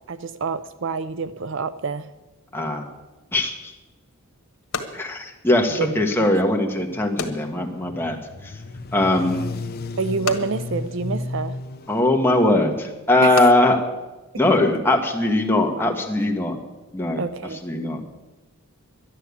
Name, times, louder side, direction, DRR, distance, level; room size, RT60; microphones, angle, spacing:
voice 1, 0.1-2.1 5.8-5.9 6.2-6.3 10.0-11.6 13.2-13.4 17.1-17.6, right 4 dB, 55° right, 13 dB, 0.5 m, -27 dB
voice 2, 2.5-2.9 3.3-3.7 4.9-8.2 8.4-8.6 8.9-9.5 11.9-13.8 14.3-16.6 16.9-17.2 17.5-18.1, left 1 dB, 10° left, 1 dB, 1.5 m, -20 dB
sound 1, 3.7-15.0, left 4 dB, 85° left, 1.6 m, -38 dB
sound 2, 6.9-12.0, left 2 dB, 45° left, 0.6 m, -33 dB
11.5 x 11.0 x 8.3 m, 1.1 s
head